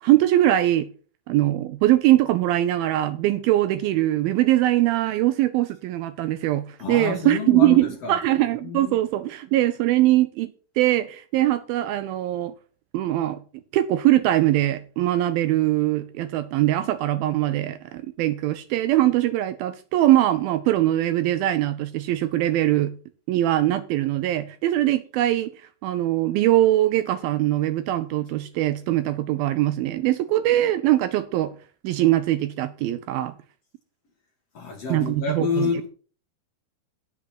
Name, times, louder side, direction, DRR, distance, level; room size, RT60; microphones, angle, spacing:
voice 1, 0.0-0.9 1.3-12.5 12.9-13.4 13.7-22.9 23.3-25.5 25.8-31.5 31.8-33.3 34.9-35.7, right 14 dB, 80° right, 2.3 m, -22 dB
voice 2, 6.8-8.2 8.6-9.0 34.5-35.9, left 5 dB, 50° left, 2.1 m, -28 dB
9.7 x 7.0 x 5.9 m
omnidirectional pair, 4.6 m